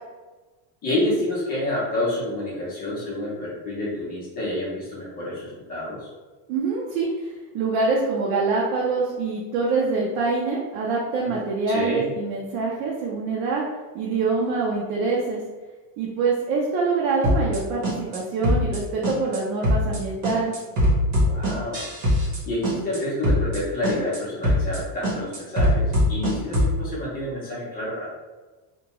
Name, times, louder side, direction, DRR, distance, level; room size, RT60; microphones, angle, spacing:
voice 1, 0.8-6.1 11.7-12.1 21.3-21.9 22.4-28.1, left 1 dB, 20° left, -6 dB, 0.5 m, -28 dB
voice 2, 6.5-13.6 13.9-15.4 16.0-20.5, right 4 dB, 65° right, -3 dB, 0.6 m, -25 dB
sound 1, 17.2-17.6 17.8-18.2 18.4-18.8 19.0-19.4 19.6-20.0 20.2-22.4 22.6-23.0 23.2-23.6 23.8-24.2 24.4-24.8 25.0-26.7, left 1 dB, 50° right, 1.3 m, -21 dB
2.7 x 2.2 x 2.9 m, 1.3 s
cardioid pair, 170°, 49 cm